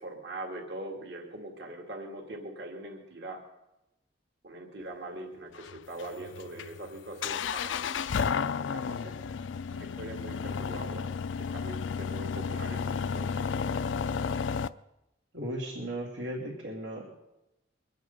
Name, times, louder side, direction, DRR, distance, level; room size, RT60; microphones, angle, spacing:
voice 1, 0.0-3.4 4.4-9.1 9.7-11.1 11.5-12.9 13.1-13.3, right 1 dB, 65° right, 1 dB, 2.1 m, -42 dB
sound 1, 5.5-14.7, left 6 dB, 80° left, 0.4 m, -32 dB
voice 2, 15.3-17.1, right 1 dB, 85° right, -4 dB, 2.6 m, -36 dB
23.5 x 9.4 x 5.4 m, 0.92 s
head